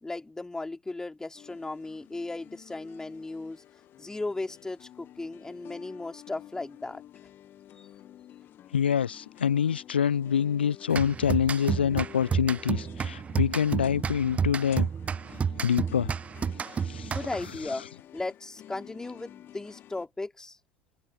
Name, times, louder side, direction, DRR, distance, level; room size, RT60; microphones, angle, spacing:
voice 1, 0.0-3.6 4.0-7.0 17.1-17.8 18.1-20.6, left 2 dB, 10° left, 4.0 m, -36 dB
sound 1, 1.3-20.1, left 12 dB, 40° left, 2.8 m, -50 dB
voice 2, 8.7-14.9 15.6-16.1 16.8-17.2, left 8 dB, 80° left, 0.7 m, -26 dB
sound 2, 10.9-17.6, right 6 dB, 25° right, 0.5 m, -31 dB
figure-of-eight pair, 70°, 6 cm